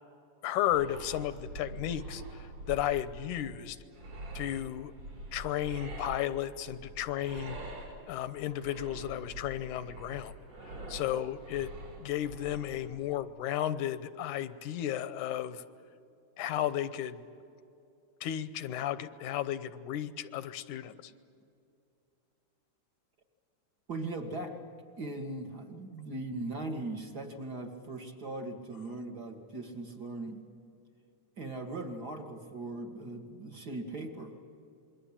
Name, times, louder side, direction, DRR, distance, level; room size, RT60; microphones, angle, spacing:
voice 1, 0.4-3.8 4.4-4.9 5.3-7.6 8.1-10.3 10.9-11.7 12.0-15.6 16.4-17.2 18.2-21.1, left 12 dB, 80° left, 14 dB, 2.3 m, -34 dB
sound 1, 0.7-12.9, right 1 dB, 55° right, 6.0 m, -45 dB
voice 2, 23.9-24.6 25.0-30.4 31.4-34.4, right 2 dB, 35° right, 4 dB, 2.0 m, -39 dB
27.5 x 22.5 x 8.7 m, 2.6 s
omnidirectional pair, 3.5 m